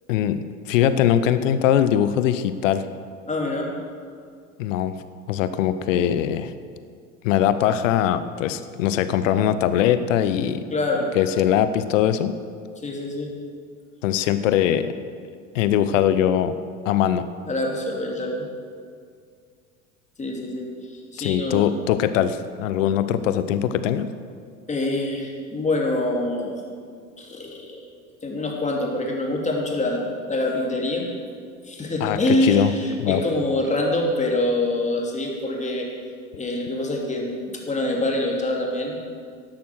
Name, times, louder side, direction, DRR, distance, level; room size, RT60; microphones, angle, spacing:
voice 1, 0.1-2.8 4.6-5.0 5.3-6.5 7.2-10.6 11.2-12.3 14.0-14.9 15.5-16.5 16.8-17.2 21.2-24.1 32.0-32.7 33.0-33.2, left 10 dB, 60° left, 13 dB, 0.9 m, -21 dB
voice 2, 3.3-3.7 10.7-11.1 12.8-13.3 17.5-18.5 20.2-21.6 24.7-26.5 27.2-27.8 28.2-31.1 31.7-35.9 36.3-39.0, left 1 dB, 15° left, 0 dB, 2.8 m, -25 dB
11.5 x 11.5 x 6.3 m, 2.2 s
figure-of-eight pair, 80°, 43 cm